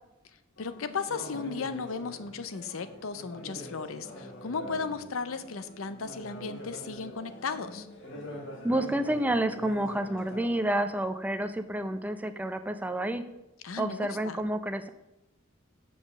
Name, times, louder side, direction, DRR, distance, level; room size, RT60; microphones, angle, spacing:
voice 1, 0.6-7.9 13.6-14.4, left 5 dB, 85° left, 12 dB, 0.6 m, -35 dB
sound 1, 0.6-10.7, equal, 60° left, 1.9 m, -44 dB
voice 2, 8.6-13.2 13.8-14.9, right 1 dB, 10° right, 9 dB, 0.4 m, -29 dB
7.1 x 5.2 x 6.4 m, 0.95 s
head